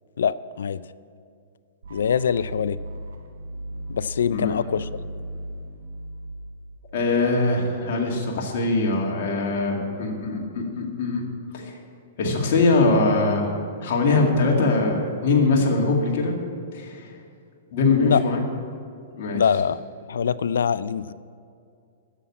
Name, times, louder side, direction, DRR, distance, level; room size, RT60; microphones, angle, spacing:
voice 1, 0.2-0.8 1.9-2.8 3.9-4.9 18.0-18.2 19.3-19.8 20.1-21.1, left 7 dB, 80° left, 18 dB, 0.4 m, -23 dB
sound 1, 1.8-7.8, right 1 dB, 80° right, 1.2 m, -37 dB
voice 2, 6.9-11.2 11.5-11.7 12.2-13.5 13.8-16.3 16.7-17.1 17.7-18.4 19.1-19.4, left 3 dB, 55° left, 0 dB, 2.2 m, -22 dB
9.9 x 7.2 x 8.4 m, 2.4 s
hypercardioid pair, 130°, 0 cm